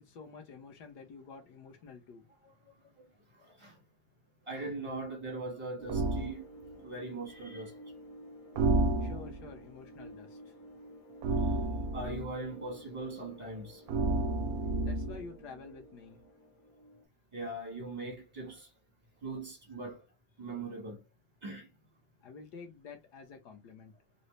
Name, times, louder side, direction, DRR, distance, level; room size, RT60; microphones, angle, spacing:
voice 1, 0.0-2.2 9.0-10.4 14.8-16.2 22.2-23.9, left 5 dB, 65° left, 1.3 m, -49 dB
voice 2, 4.5-6.4 6.8-7.7 11.9-13.8 17.3-18.7 19.2-20.0 20.4-21.0 21.4-21.7, right 2 dB, 25° right, 0.6 m, -40 dB
sound 1, 5.8-17.0, equal, 45° left, 1.5 m, -52 dB
sound 2, 5.9-6.3 8.6-9.5 11.2-12.3 13.9-15.3, right 2 dB, 70° right, 0.9 m, -30 dB
4.0 x 2.0 x 3.1 m
omnidirectional pair, 2.1 m